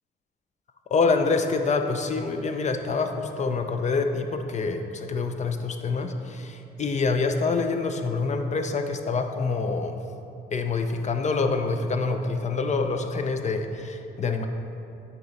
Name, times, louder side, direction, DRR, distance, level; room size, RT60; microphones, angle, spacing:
voice 1, 0.9-10.0 10.5-14.5, left 4 dB, 35° left, 6 dB, 0.5 m, -26 dB
7.7 x 3.0 x 5.1 m, 2.7 s
cardioid pair, 90°, 20 cm